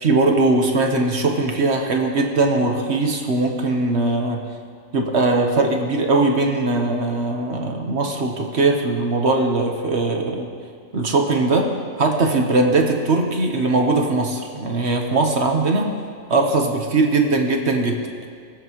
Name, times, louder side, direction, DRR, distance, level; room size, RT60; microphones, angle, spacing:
voice 1, 0.0-4.4 4.9-10.5 10.9-11.7 12.0-15.9 16.3-18.0, right 2 dB, 55° right, 2 dB, 1.3 m, -20 dB
22.0 x 8.1 x 3.1 m, 2.2 s
omnidirectional pair, 1.5 m